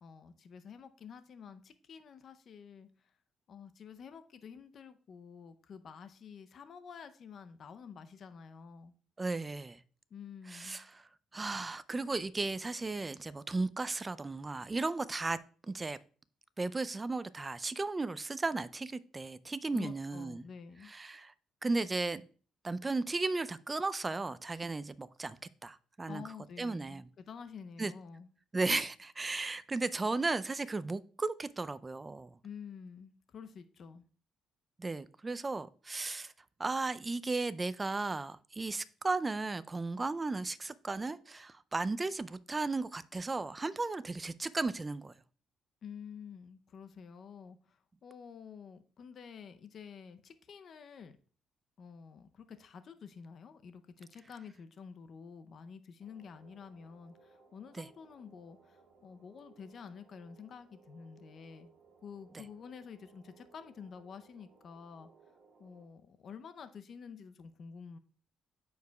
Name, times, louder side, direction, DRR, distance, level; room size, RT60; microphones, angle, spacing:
voice 1, 0.0-2.9 3.5-8.9 10.1-10.8 19.7-20.9 26.1-28.3 32.4-34.0 45.8-51.1 51.8-61.7 62.0-65.1 65.6-68.0, left 6 dB, 55° left, 0.6 m, -49 dB
voice 2, 9.2-9.8 10.5-15.4 15.7-16.0 16.6-20.4 20.8-21.3 21.6-22.3 22.6-25.4 25.6-26.2 26.6-27.1 27.8-27.9 28.5-32.3 34.8-36.3 36.6-45.1 57.8-57.9, right 3 dB, 20° right, 0.4 m, -35 dB
sound 1, 56.0-65.9, right 5 dB, 65° right, 2.0 m, -63 dB
13.0 x 4.8 x 2.3 m
cardioid pair, 100°, 0 cm